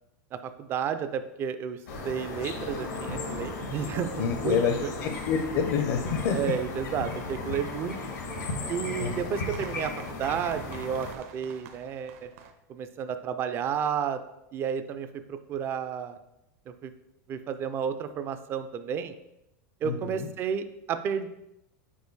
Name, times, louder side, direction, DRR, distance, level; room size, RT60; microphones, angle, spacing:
voice 1, 0.4-1.8 2.0-4.9 6.3-8.0 8.7-9.9 10.2-12.3 12.7-14.2 14.5-16.2 16.7-16.9 17.3-19.1 19.8-21.3, right 7 dB, 25° right, 10 dB, 0.4 m, -32 dB
sound 1, 1.9-11.1, left 3 dB, 90° left, 1.4 m, -35 dB
voice 2, 4.2-6.5 9.0-9.1 19.8-20.3, left 6 dB, 50° left, 6 dB, 0.6 m, -28 dB
sound 2, 7.0-12.5, right 7 dB, 55° right, 0.7 m, -51 dB
5.3 x 4.4 x 4.6 m, 0.87 s
supercardioid pair, 160°, 9 cm